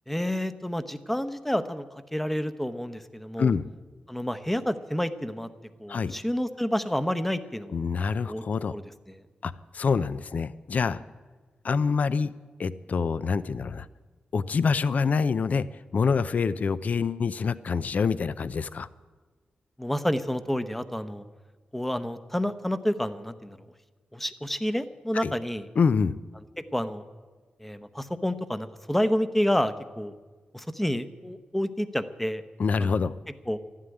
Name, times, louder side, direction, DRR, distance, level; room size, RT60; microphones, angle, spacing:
voice 1, 0.1-3.5 4.1-5.5 5.8-7.8 8.3-8.4 8.7-9.2 19.8-21.2 21.7-23.6 24.1-25.7 26.6-27.0 27.6-30.1 30.5-32.4 32.8-33.0 33.5-33.6, equal, 5° left, 11 dB, 0.8 m, -29 dB
voice 2, 3.4-3.7 5.9-6.2 7.7-8.7 9.4-11.0 11.6-12.3 12.6-13.9 14.3-15.7 15.9-18.9 25.2-25.3 25.8-26.2 32.6-33.1, left 5 dB, 55° left, 16 dB, 0.5 m, -26 dB
13.0 x 11.5 x 9.8 m, 1.3 s
wide cardioid pair, 95°, 3 cm